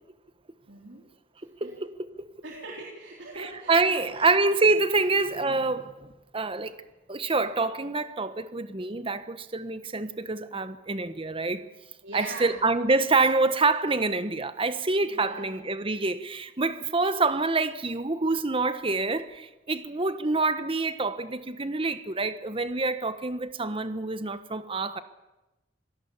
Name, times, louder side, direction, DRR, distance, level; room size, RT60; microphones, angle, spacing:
voice 1, 0.7-1.1 1.6-1.7 2.4-4.2 5.5-5.6 12.0-12.6 15.1-15.6, right 2 dB, 75° right, 3.8 m, -41 dB
voice 2, 1.6-1.9 2.2-2.3 3.4-6.7 7.1-11.6 12.1-25.0, right 3 dB, 30° right, 1.2 m, -26 dB
26.0 x 19.0 x 7.3 m
head